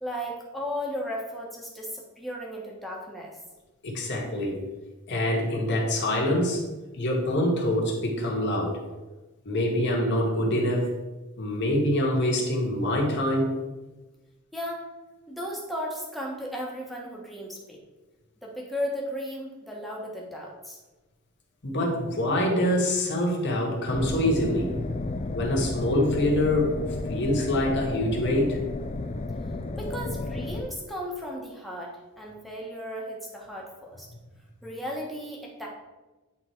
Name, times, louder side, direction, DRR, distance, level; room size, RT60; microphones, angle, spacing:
voice 1, 0.0-3.4 14.5-14.9 15.3-17.8 18.4-20.8 29.7-34.1 34.6-35.7, equal, ahead, -3 dB, 1.3 m, -35 dB
voice 2, 3.8-4.6 5.1-6.6 6.9-8.8 9.4-10.9 11.4-13.6 21.6-24.7 25.3-26.7 27.1-28.6, left 1 dB, 55° left, -1 dB, 1.6 m, -25 dB
sound 1, 23.9-30.6, left 2 dB, 30° left, 0.4 m, -32 dB
8.8 x 3.9 x 4.5 m, 1.2 s
head